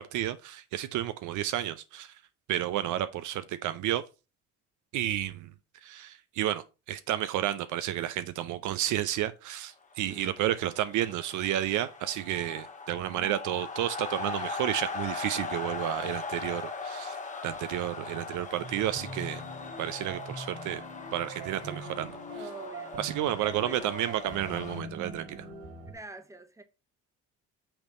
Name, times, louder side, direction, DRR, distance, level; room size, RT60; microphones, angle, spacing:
voice 1, 0.0-2.2 2.5-4.0 4.9-5.5 5.8-19.4 19.8-20.8 21.1-22.2 23.0-25.5, right 12 dB, 65° right, 0.5 m, -31 dB
sound 1, 10.0-24.8, left 4 dB, 25° left, 1.2 m, -40 dB
voice 2, 10.1-10.5 22.3-23.1 23.4-24.0 25.9-26.6, right 2 dB, 10° right, 1.1 m, -46 dB
sound 2, 18.6-25.9, right 1 dB, 90° right, 2.8 m, -42 dB
5.8 x 3.4 x 5.3 m
cardioid pair, 90°, 33 cm